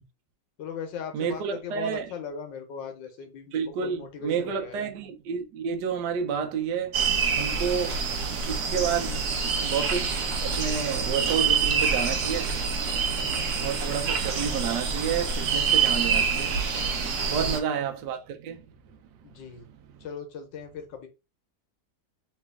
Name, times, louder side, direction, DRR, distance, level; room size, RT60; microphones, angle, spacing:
voice 1, 0.6-4.8 13.2-13.7 17.3-17.6 19.2-19.7 20.0-21.1, left 6 dB, 85° left, 1.6 m, -39 dB
voice 2, 1.1-2.1 3.5-7.0 7.4-8.1 8.5-9.3 9.6-19.0 19.5-20.1, right 7 dB, 75° right, 1.2 m, -31 dB
sound 1, 6.9-17.6, right 5 dB, 55° right, 0.9 m, -26 dB
3.3 x 3.0 x 3.4 m
omnidirectional pair, 1.9 m